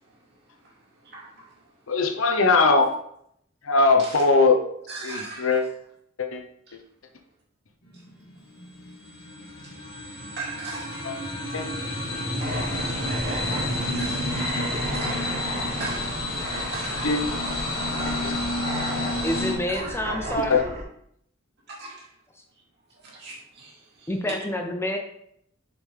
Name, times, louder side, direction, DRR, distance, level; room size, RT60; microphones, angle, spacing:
voice 1, 1.0-1.7 4.0-4.2 4.9-5.7 6.7-6.8 9.6-9.7 10.3-11.2 11.5-11.6 12.4-12.6 13.3-13.4 13.9-14.4 14.8-15.3 15.7-16.3 16.7-17.3 19.7-19.9 21.7-22.1 23.0-24.1, right 3 dB, 55° right, -4 dB, 2.5 m, -39 dB
voice 2, 1.9-2.9 3.6-4.6 5.0-5.6 6.2-6.4 11.0-11.1 11.5-11.7 17.0-17.2 18.1-18.3 20.5-20.6, left 3 dB, 75° left, 5 dB, 0.9 m, -20 dB
sound 1, 7.9-19.5, left 1 dB, 50° left, 1.8 m, -30 dB
sound 2, 12.4-20.8, right 1 dB, 35° right, 1.3 m, -34 dB
voice 3, 19.2-20.6 24.1-25.0, equal, 10° left, 4 dB, 0.5 m, -28 dB
7.1 x 5.2 x 3.4 m, 0.71 s
head